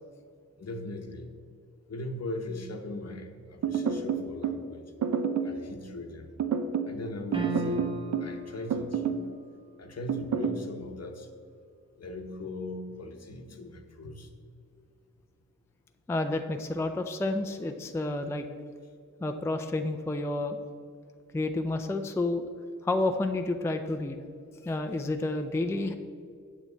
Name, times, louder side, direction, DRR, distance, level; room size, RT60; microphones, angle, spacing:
voice 1, 0.6-1.3 1.9-4.8 5.4-6.3 6.9-7.9 8.2-9.3 9.8-11.3 12.0-14.3, left 2 dB, 55° left, 5 dB, 0.9 m, -39 dB
sound 1, 3.6-4.6 5.0-5.6 6.4-7.0 7.3-8.3 8.7-9.3 10.1-10.6, right 6 dB, 70° right, 0.6 m, -29 dB
sound 2, 7.3-8.4, right 1 dB, 15° right, 1.0 m, -33 dB
voice 2, 16.1-18.5 19.2-20.6 21.3-22.5 22.8-24.2 24.6-26.0, left 2 dB, 10° left, 6 dB, 0.3 m, -30 dB
8.3 x 7.2 x 3.9 m, 2.3 s
wide cardioid pair, 145°, 31 cm